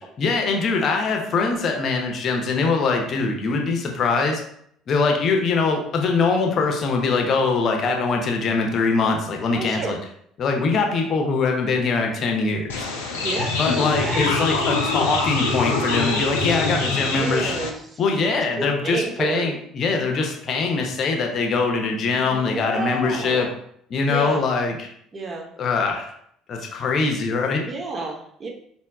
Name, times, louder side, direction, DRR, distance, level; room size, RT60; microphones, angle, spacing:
voice 1, 0.2-4.4 4.9-10.0 10.4-12.9 13.6-17.6 18.0-23.5 23.9-24.9 25.6-26.1 26.5-27.7, left 4 dB, 45° left, 2 dB, 0.7 m, -22 dB
voice 2, 9.5-10.0 13.1-13.5 13.8-14.8 16.5-19.5 20.2-20.3 22.1-23.5 24.1-24.4 25.1-25.5 27.7-28.5, right 3 dB, 30° right, 0 dB, 0.8 m, -31 dB
sound 1, 12.7-17.7, left 3 dB, 70° left, 0.4 m, -24 dB
4.2 x 2.2 x 3.5 m, 0.69 s
figure-of-eight pair, 55°, 0 cm